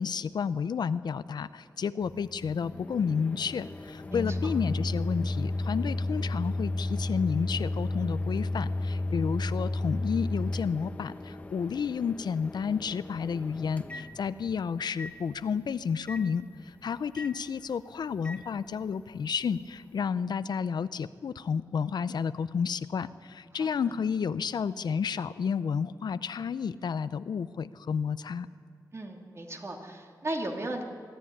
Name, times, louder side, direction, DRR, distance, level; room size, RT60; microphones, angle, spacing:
voice 1, 0.0-28.5, left 6 dB, 85° left, 14 dB, 0.6 m, -31 dB
Microwave oven, 2.0-14.6 15.0-15.1 16.1-16.2 17.2-17.3 18.2-18.4, left 2 dB, 20° left, 1.1 m, -33 dB
voice 2, 4.0-4.5 23.6-23.7 28.9-30.8, right 1 dB, 40° right, 2 dB, 2.7 m, -36 dB
23.0 x 13.5 x 10.0 m, 2.1 s
wide cardioid pair, 115°, 7 cm